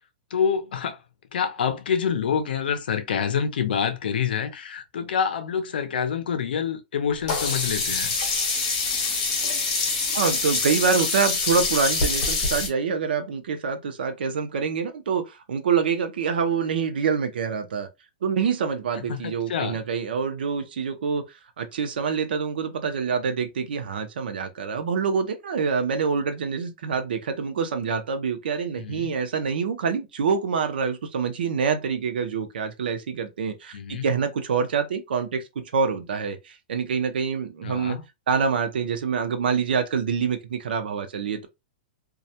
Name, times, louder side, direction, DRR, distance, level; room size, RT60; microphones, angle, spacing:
voice 1, 0.3-1.0 1.3-8.1 18.9-19.8 28.8-29.2 33.7-34.1 37.6-38.1, left 7 dB, 80° left, 0.5 m, -27 dB
Sink (filling or washing), 7.3-12.7, left 3 dB, 35° left, 1.0 m, -25 dB
voice 2, 10.1-17.9 18.2-38.0 38.3-41.5, right 6 dB, 90° right, 0.5 m, -26 dB
2.3 x 2.1 x 2.7 m
supercardioid pair, 175°, 5 cm